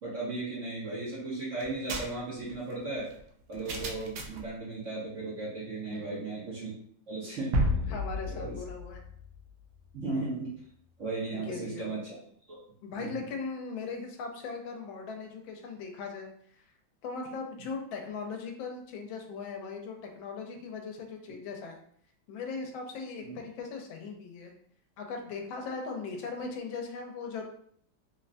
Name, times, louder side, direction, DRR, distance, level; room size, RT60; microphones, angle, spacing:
voice 1, 0.0-3.1 3.5-6.7 7.1-7.6 8.3-8.5 9.9-10.5 11.0-12.2 12.5-12.6 13.0-13.3 21.3-21.4 23.2-23.3, right 3 dB, 50° right, -7 dB, 1.0 m, -36 dB
Paper Torn, 1.6-4.5, right 3 dB, 90° right, 0.7 m, -40 dB
voice 2, 5.9-6.2 7.9-9.0 11.3-11.9 12.8-16.3 16.6-16.7 17.0-21.8 22.3-24.5 25.0-27.4, left 4 dB, 90° left, 3 dB, 1.4 m, -39 dB
sound 1, 7.5-10.0, left 1 dB, 75° right, 1.2 m, -31 dB
3.8 x 2.1 x 2.5 m, 0.64 s
omnidirectional pair, 2.1 m